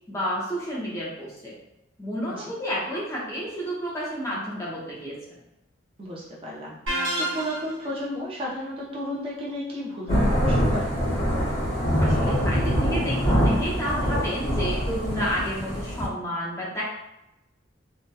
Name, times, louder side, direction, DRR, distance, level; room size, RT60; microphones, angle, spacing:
voice 1, 0.1-1.6 2.0-5.2 12.0-16.8, equal, 15° left, -6 dB, 0.6 m, -30 dB
voice 2, 6.0-11.0, equal, 30° right, -5 dB, 0.5 m, -33 dB
sound 1, 6.9-7.9, right 1 dB, 75° right, 1.0 m, -28 dB
Thunder / Rain, 10.1-16.1, equal, 50° left, 0.9 m, -24 dB
2.7 x 2.1 x 2.2 m, 0.89 s
head